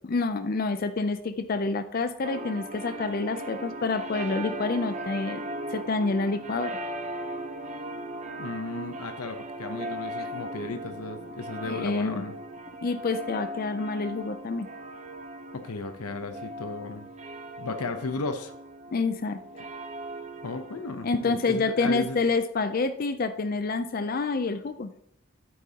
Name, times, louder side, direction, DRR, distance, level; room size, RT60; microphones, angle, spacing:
voice 1, 0.1-5.4 5.7-6.8 11.6-12.2 12.8-14.7 18.9-19.4 21.0-24.9, left 3 dB, 40° left, 10 dB, 0.4 m, -28 dB
sound 1, 2.2-22.0, right 1 dB, 30° right, 0.7 m, -38 dB
voice 2, 8.4-12.3 15.5-17.1 17.6-18.5 20.4-22.2, left 3 dB, 90° left, 8 dB, 0.8 m, -35 dB
9.1 x 8.5 x 2.9 m, 0.71 s
head